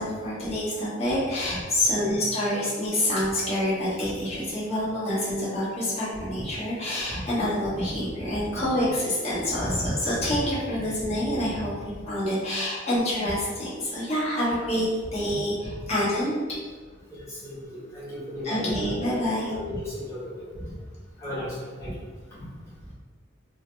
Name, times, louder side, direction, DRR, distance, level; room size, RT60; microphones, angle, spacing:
voice 1, 0.0-16.4 18.4-19.5 21.8-21.9, left 1 dB, 35° left, -8 dB, 1.0 m, -27 dB
voice 2, 17.1-19.0 19.4-20.5 21.2-22.0 22.4-22.5, left 1 dB, 15° left, -11 dB, 1.2 m, -35 dB
2.7 x 2.0 x 3.1 m, 1.5 s
head